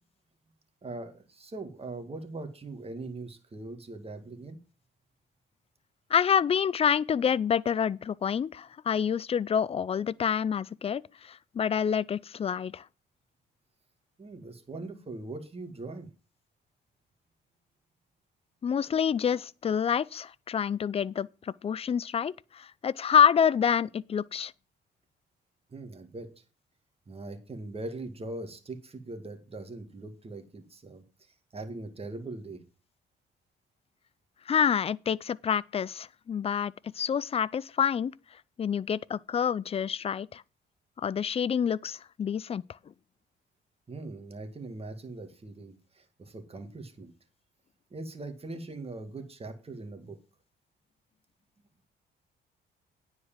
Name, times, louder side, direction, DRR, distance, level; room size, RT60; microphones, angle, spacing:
voice 1, 0.8-4.6 14.2-16.1 25.7-26.3 27.1-32.6 43.9-47.1 47.9-50.2, right 2 dB, 30° right, 2.0 m, -41 dB
voice 2, 6.1-12.8 18.6-24.5 34.5-38.1 38.6-40.4 41.0-42.6, left 7 dB, 30° left, 0.4 m, -27 dB
9.7 x 4.8 x 7.3 m
cardioid pair, 90°, 20 cm